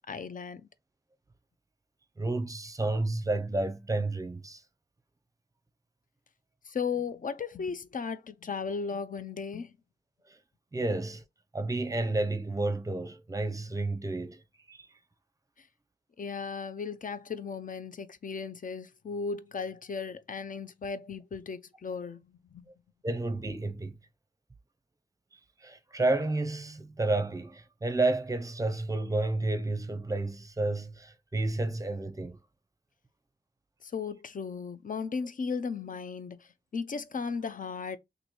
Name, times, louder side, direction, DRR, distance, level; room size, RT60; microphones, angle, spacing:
voice 1, 0.1-0.7 6.6-9.7 15.6-15.7 16.2-22.6 33.8-38.0, left 5 dB, 50° left, 0.5 m, -36 dB
voice 2, 2.2-4.6 10.7-11.2 11.5-14.4 14.7-14.9 23.0-24.0 25.6-32.4, right 2 dB, 20° right, 0.6 m, -31 dB
3.0 x 2.6 x 4.0 m
wide cardioid pair, 75°, 18 cm